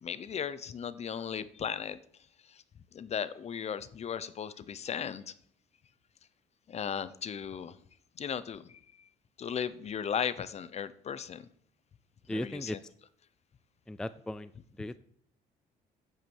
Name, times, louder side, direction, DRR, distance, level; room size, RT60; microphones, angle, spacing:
voice 1, 0.0-2.0 2.5-2.6 2.9-5.2 6.7-7.8 8.2-8.8 9.4-11.5 12.3-12.8, left 7 dB, 40° left, 15 dB, 0.8 m, -36 dB
voice 2, 12.3-12.8 13.9-14.5 14.8-15.0, left 1 dB, 5° left, 14 dB, 0.4 m, -36 dB
9.2 x 8.6 x 7.2 m, 0.62 s
cardioid pair, 110°, 17 cm